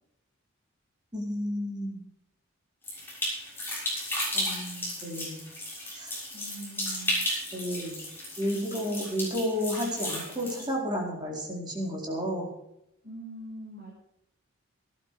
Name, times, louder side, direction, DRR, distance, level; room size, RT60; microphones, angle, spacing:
voice 1, 1.1-2.0 4.3-5.4 5.9-6.1 7.5-8.0 8.4-12.5, equal, 20° right, -2 dB, 4.5 m, -32 dB
sound 1, 2.8-10.7, left 1 dB, 10° left, 6.8 m, -34 dB
voice 2, 6.3-7.3 13.0-13.9, right 2 dB, 45° right, -6 dB, 6.3 m, -42 dB
18.5 x 11.5 x 5.0 m, 0.81 s
head